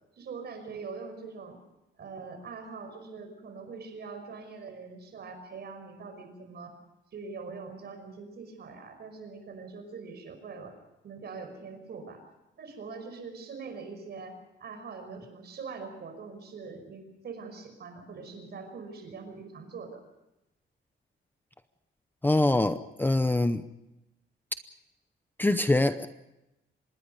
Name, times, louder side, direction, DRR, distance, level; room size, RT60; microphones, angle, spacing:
voice 1, 0.2-1.6 2.0-6.8 7.1-10.8 11.0-12.2 12.6-20.0, right 4 dB, 55° right, 7 dB, 5.5 m, -43 dB
voice 2, 22.2-23.6 25.4-26.1, left 2 dB, 10° left, 10 dB, 0.7 m, -24 dB
26.0 x 21.0 x 5.5 m, 0.92 s
wide cardioid pair, 175°, 20 cm